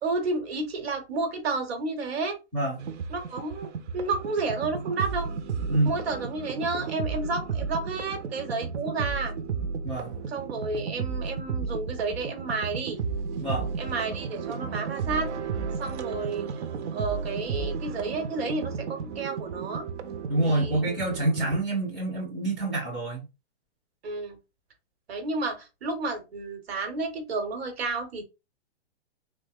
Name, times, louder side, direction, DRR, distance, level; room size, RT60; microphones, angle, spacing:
voice 1, 0.0-2.4 3.1-5.3 5.8-9.3 10.3-13.0 13.8-15.3 15.8-16.5 16.9-19.9 20.4-21.0 24.0-24.4 25.1-28.2, right 3 dB, 60° right, 1.1 m, -31 dB
sound 1, 2.8-21.6, right 5 dB, 90° right, 0.6 m, -33 dB
voice 2, 20.3-23.2, right 2 dB, ahead, 0.5 m, -27 dB
3.3 x 2.1 x 3.4 m
hypercardioid pair, 175°, 34 cm